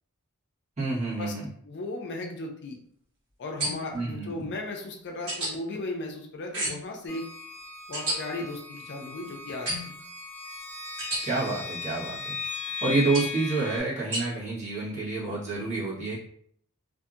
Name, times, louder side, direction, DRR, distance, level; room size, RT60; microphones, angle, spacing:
voice 1, 0.8-1.5 3.9-4.5 11.2-12.4 12.8-16.2, right 3 dB, 30° right, -9 dB, 1.2 m, -28 dB
voice 2, 1.6-2.8 3.4-7.3 7.9-10.0, left 2 dB, 50° left, 1 dB, 0.4 m, -36 dB
sound 1, 3.6-4.0 5.3-5.5 6.5-6.9 7.9-8.2 9.7-10.0 11.0-11.2 13.1-13.4 14.1-14.2, right 1 dB, 55° right, 1.3 m, -31 dB
sound 2, 7.1-13.8, left 4 dB, 5° left, 0.6 m, -37 dB
2.7 x 2.5 x 2.4 m, 0.66 s
head